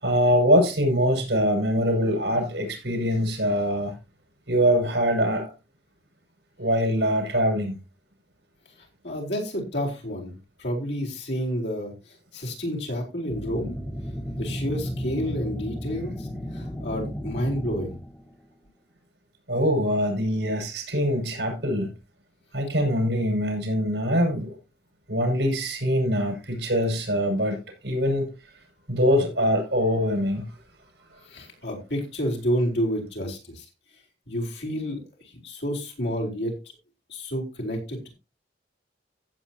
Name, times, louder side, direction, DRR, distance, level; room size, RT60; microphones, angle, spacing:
voice 1, 0.0-3.9 4.5-5.5 6.6-7.8 19.5-21.9 22.5-24.6 25.1-28.3 28.9-30.5, equal, 70° right, 6.2 m, -23 dB
voice 2, 9.0-10.3 10.6-13.8 14.4-16.3 16.5-17.9 31.3-33.6 34.3-35.0 35.4-36.5 37.1-38.1, equal, 75° left, 4.3 m, -29 dB
sound 1, 13.3-18.3, equal, 10° left, 1.2 m, -33 dB
15.5 x 8.4 x 2.9 m
head